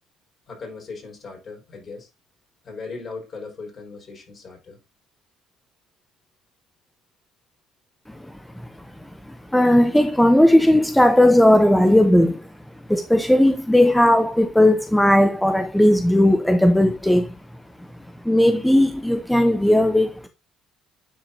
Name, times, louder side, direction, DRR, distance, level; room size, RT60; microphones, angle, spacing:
voice 1, 0.5-2.1 2.6-4.8, left 4 dB, 45° left, 5.0 m, -38 dB
voice 2, 8.1-8.6 9.3-12.5 12.9-17.3 18.2-20.3, left 1 dB, 5° left, 0.7 m, -17 dB
9.5 x 5.1 x 2.7 m
supercardioid pair, 70°, 0 cm